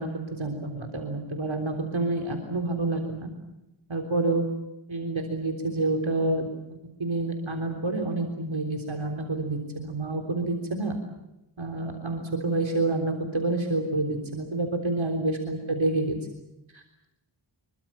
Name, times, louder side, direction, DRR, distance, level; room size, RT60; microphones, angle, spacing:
voice 1, 0.0-3.3 3.9-4.4 4.9-6.5 7.0-11.0 11.6-16.2 16.7-17.1, right 2 dB, 70° right, 3 dB, 3.6 m, -28 dB
27.0 x 23.5 x 7.4 m, 0.92 s
wide cardioid pair, 50°, 48 cm